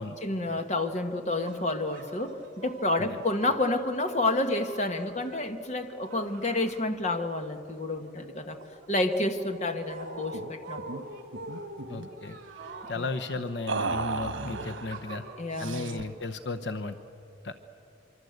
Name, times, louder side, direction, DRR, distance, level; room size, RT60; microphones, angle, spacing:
voice 1, 0.2-8.6 8.9-11.0 12.9-13.1 15.4-16.0, left 2 dB, 35° left, 7 dB, 1.3 m, -29 dB
sound 1, 1.2-7.4 7.7-16.7, right 2 dB, 45° right, 3.7 m, -45 dB
sound 2, 10.3-10.5 10.8-11.0 11.3-12.1 13.7-14.9 15.6-16.2, right 3 dB, 85° right, 1.3 m, -34 dB
voice 2, 11.9-12.4 12.9-15.2 15.6-17.0 17.4-17.5, left 3 dB, 65° left, 7 dB, 0.9 m, -34 dB
25.0 x 24.5 x 8.0 m, 2.7 s
head